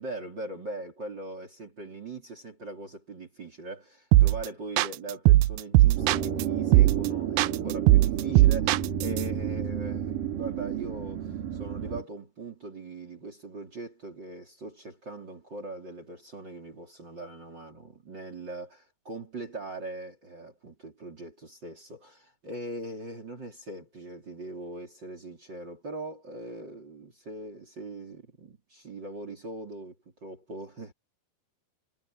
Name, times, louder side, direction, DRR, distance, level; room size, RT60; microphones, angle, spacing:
voice 1, 0.0-29.9 30.2-30.9, right 2 dB, 30° right, 3.6 m, -41 dB
sound 1, 4.1-4.5 4.8-6.4 6.7-7.1 7.4-9.2, right 16 dB, 90° right, 2.0 m, -19 dB
sound 2, 6.0-12.0, right 9 dB, 60° right, 4.4 m, -31 dB
omnidirectional pair, 4.6 m